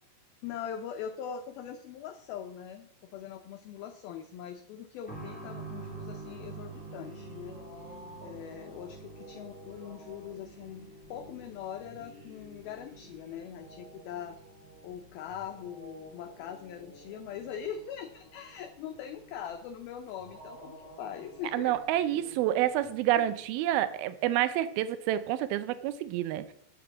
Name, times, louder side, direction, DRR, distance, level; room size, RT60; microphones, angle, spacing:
voice 1, 0.4-14.4 14.8-21.7 23.2-23.3, left 8 dB, 80° left, 6 dB, 2.2 m, -42 dB
sound 1, 5.1-19.5 19.8-19.9 20.8-20.9, right 5 dB, 5° left, 1.4 m, -49 dB
sound 2, 5.3-23.8, equal, 45° right, 4.4 m, -52 dB
voice 2, 21.5-26.4, right 12 dB, 85° right, 14 dB, 2.1 m, -28 dB
10.5 x 6.8 x 7.2 m, 0.69 s
omnidirectional pair, 5.1 m